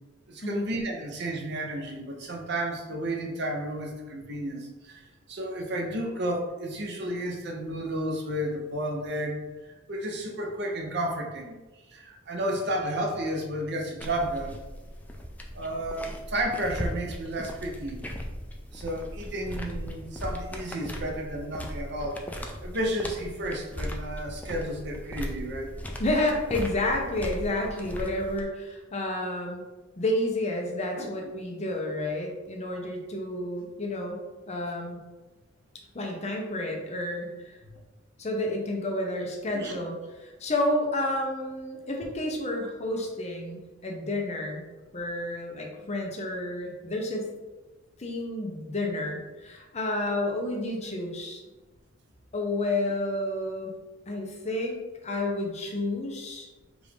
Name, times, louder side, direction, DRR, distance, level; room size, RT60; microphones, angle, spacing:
voice 1, 0.3-14.6 15.5-18.0 18.7-22.2 22.6-25.7 31.0-31.1 39.5-39.8, right 1 dB, 55° right, 2 dB, 0.7 m, -32 dB
sound 1, 14.0-28.4, equal, 10° left, 0.3 m, -38 dB
voice 2, 26.0-29.6 30.0-34.2 34.5-35.0 35.9-37.6 38.2-44.7 44.9-47.3 48.0-51.4 52.3-53.7 54.1-56.5, left 1 dB, 35° left, 1 dB, 0.7 m, -30 dB
4.8 x 2.5 x 3.4 m, 1.2 s
head